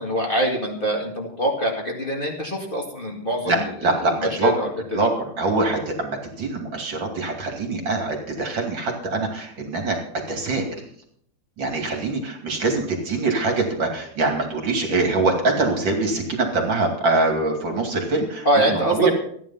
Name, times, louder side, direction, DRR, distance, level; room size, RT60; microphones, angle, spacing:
voice 1, 0.0-5.1 18.4-19.1, right 1 dB, 25° left, -1 dB, 2.2 m, -24 dB
voice 2, 3.4-10.0 10.3-10.8 11.6-19.1, right 3 dB, 60° right, 2 dB, 3.2 m, -24 dB
14.5 x 10.0 x 5.6 m, 0.65 s
omnidirectional pair, 2.3 m